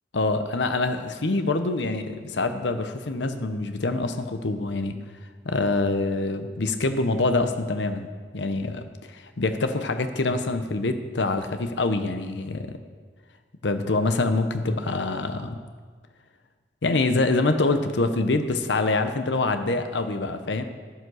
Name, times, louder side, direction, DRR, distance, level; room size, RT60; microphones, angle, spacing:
voice 1, 0.1-5.0 5.4-8.1 8.3-12.8 13.6-15.6 16.8-20.6, left 2 dB, 85° left, 8 dB, 0.8 m, -25 dB
11.0 x 9.5 x 6.3 m, 1.5 s
head